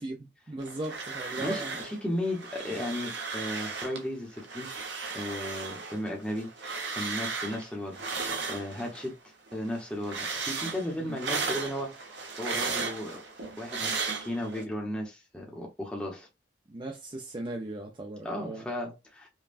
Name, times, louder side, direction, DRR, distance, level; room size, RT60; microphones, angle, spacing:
voice 1, 0.0-1.8 10.9-11.2 16.7-18.7, right 2 dB, 25° right, 0.5 m, -38 dB
sound 1, 0.6-2.0 2.2-4.0 4.4-9.1 9.5-14.6, right 4 dB, 75° right, 1.0 m, -35 dB
voice 2, 1.4-4.8 5.1-6.5 6.9-8.0 8.5-9.1 9.5-13.2 13.6-16.3 18.2-19.3, left 1 dB, 5° left, 0.8 m, -35 dB
5.3 x 2.2 x 2.5 m
head